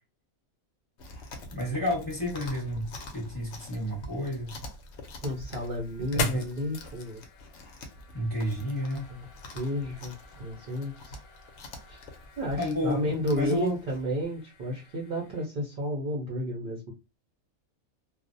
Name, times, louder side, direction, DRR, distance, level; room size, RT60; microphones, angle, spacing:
Chewing mastication, 1.0-14.0, left 1 dB, 65° left, 0.7 m, -46 dB
voice 1, 1.5-2.9 3.1-4.5 6.1-6.4 8.1-9.1 12.5-13.8, left 1 dB, 20° left, 0.7 m, -30 dB
sound 1, 4.5-15.5, left 4 dB, 90° left, 1.0 m, -42 dB
voice 2, 5.2-7.2 9.1-10.1 10.4-11.2 11.9-12.0 12.4-16.9, equal, 60° right, 0.5 m, -32 dB
2.4 x 2.0 x 2.5 m
omnidirectional pair, 1.5 m